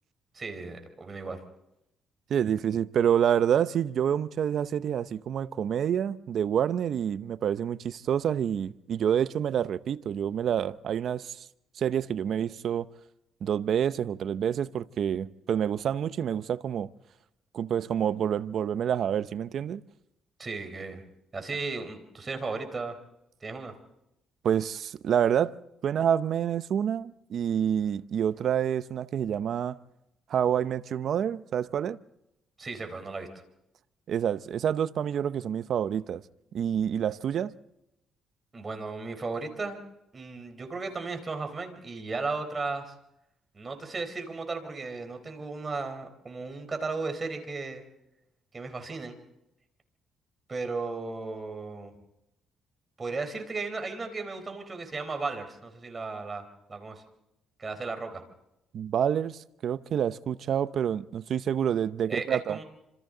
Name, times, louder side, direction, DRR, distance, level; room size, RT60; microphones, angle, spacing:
voice 1, 0.3-1.4 20.4-21.0 21.3-23.0 23.4-23.8 32.6-33.3 38.5-39.8 40.1-42.9 43.5-47.8 48.5-49.2 50.5-51.9 53.0-56.4 56.7-57.0 57.6-58.2 62.1-62.6, right 3 dB, 30° right, 4.1 m, -35 dB
voice 2, 2.3-11.5 11.8-12.9 13.4-16.9 17.5-19.8 24.4-25.5 25.8-29.8 30.3-32.0 34.1-36.2 36.5-37.5 58.7-62.6, right 9 dB, 65° right, 0.8 m, -28 dB
28.5 x 26.5 x 3.9 m
cardioid pair, 90°, 0 cm